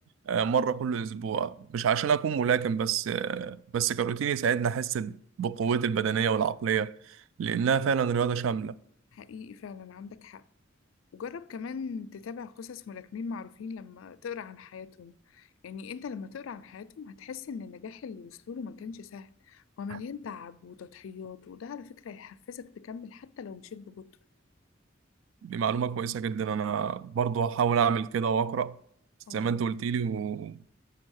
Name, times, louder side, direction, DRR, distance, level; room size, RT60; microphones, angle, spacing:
voice 1, 0.3-8.8 19.9-20.0 25.4-28.8 29.3-30.6, right 7 dB, 80° right, 0.3 m, -28 dB
voice 2, 9.1-10.4 11.1-24.1 29.3-29.6, left 6 dB, 90° left, 0.4 m, -41 dB
6.7 x 5.3 x 6.3 m
head